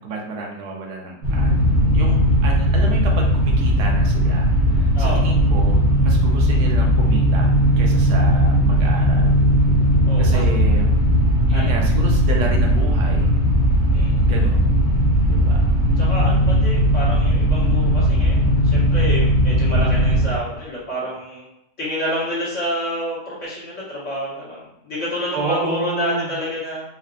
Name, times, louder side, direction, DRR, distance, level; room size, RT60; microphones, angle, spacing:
voice 1, 0.0-1.6 1.9-9.4 10.2-10.9 11.5-13.3 14.2-14.7 15.3-15.7 25.3-26.3, right 3 dB, 80° right, 0 dB, 1.3 m, -30 dB
sound 1, 1.2-20.3, equal, 60° right, 1.5 m, -17 dB
voice 2, 4.9-5.3 10.1-10.4 11.5-11.8 13.9-14.2 16.0-21.5 21.8-26.8, equal, 50° left, -8 dB, 1.7 m, -28 dB
4.4 x 2.6 x 2.4 m, 0.84 s
omnidirectional pair, 1.8 m